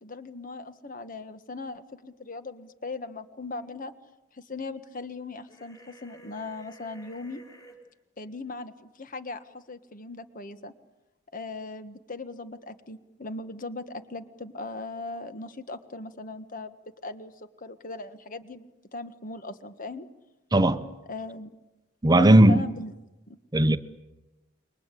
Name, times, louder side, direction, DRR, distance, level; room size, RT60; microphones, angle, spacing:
voice 1, 0.0-3.9 4.3-7.4 8.2-10.7 11.3-16.8 17.0-20.1 21.1-21.5 22.1-22.9 23.3-23.4, left 3 dB, 40° left, 1.5 m, -39 dB
sound 1, 5.5-7.8, right 1 dB, 20° left, 6.3 m, -52 dB
voice 2, 20.5-20.8 22.0-22.7 23.5-23.8, right 1 dB, 20° right, 0.9 m, -17 dB
28.0 x 23.5 x 8.4 m
head